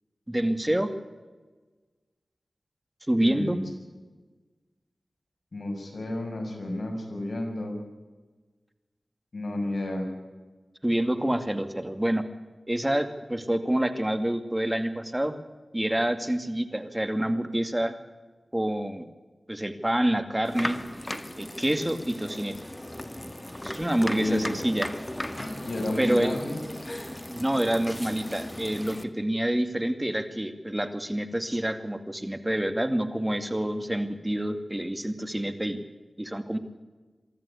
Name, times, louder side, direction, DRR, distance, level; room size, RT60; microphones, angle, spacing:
voice 1, 0.3-0.9 3.1-3.6 10.8-12.2 12.7-15.3 15.7-17.9 18.5-19.0 19.5-20.8 21.4-22.6 23.6-24.9 26.0-26.3 27.3-35.8 36.2-36.6, right 1 dB, 15° right, 8 dB, 2.4 m, -27 dB
voice 2, 3.2-3.6 5.5-7.8 9.3-10.1 24.1-24.6 25.6-26.6, left 1 dB, 60° left, 3 dB, 6.5 m, -31 dB
sound 1, 20.4-29.0, left 1 dB, 15° left, 1.7 m, -36 dB
24.5 x 13.5 x 8.5 m, 1.3 s
wide cardioid pair, 55°, 0 cm